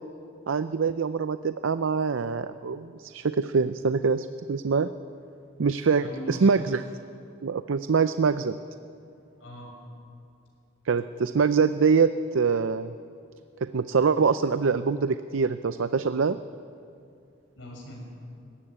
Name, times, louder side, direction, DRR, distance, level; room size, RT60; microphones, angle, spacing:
voice 1, 0.5-4.9 5.6-6.8 7.4-8.5 10.9-12.9 13.6-16.4, right 5 dB, 80° right, 12 dB, 0.5 m, -24 dB
voice 2, 6.0-6.8 9.4-9.7 17.6-18.0, left 1 dB, 75° left, -1 dB, 6.3 m, -40 dB
18.5 x 15.0 x 9.9 m, 2.5 s
head